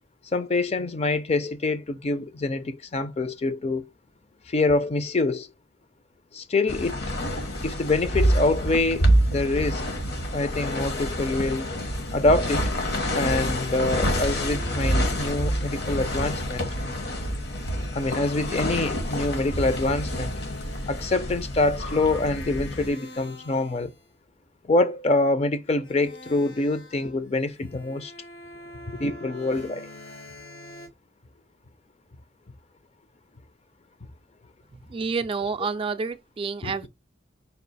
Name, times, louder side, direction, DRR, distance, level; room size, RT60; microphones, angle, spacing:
voice 1, 0.3-3.8 4.5-5.5 6.3-7.1 7.6-9.8 10.3-11.7 12.1-12.7 13.1-16.7 17.9-20.3 20.9-23.9 24.7-28.1 28.9-29.9 36.6-36.8, left 2 dB, 35° left, 0.5 m, -25 dB
sound 1, 6.7-22.9, equal, 60° left, 1.1 m, -27 dB
sound 2, 11.0-11.7 12.5-24.1 25.7-30.9, left 2 dB, 80° left, 1.5 m, -46 dB
voice 2, 34.9-36.9, right 4 dB, 30° right, 0.3 m, -29 dB
5.3 x 2.4 x 4.0 m
head